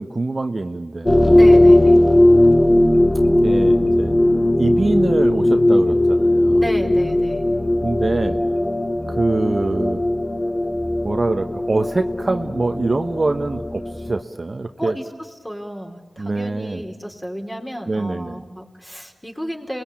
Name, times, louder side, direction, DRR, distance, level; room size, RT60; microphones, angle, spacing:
voice 1, 0.0-1.5 3.4-4.1 4.6-6.6 7.8-8.4 9.1-10.0 11.0-14.9 16.2-16.8 17.9-18.4, right 2 dB, 50° right, 7 dB, 1.1 m, -24 dB
sound 1, 1.1-14.2, left 1 dB, 30° left, 1.7 m, -17 dB
voice 2, 1.3-2.0 6.6-7.4 14.8-19.8, equal, 10° left, 2 dB, 4.4 m, -32 dB
27.0 x 21.0 x 8.7 m, 1.4 s
cardioid pair, 40°, 0 cm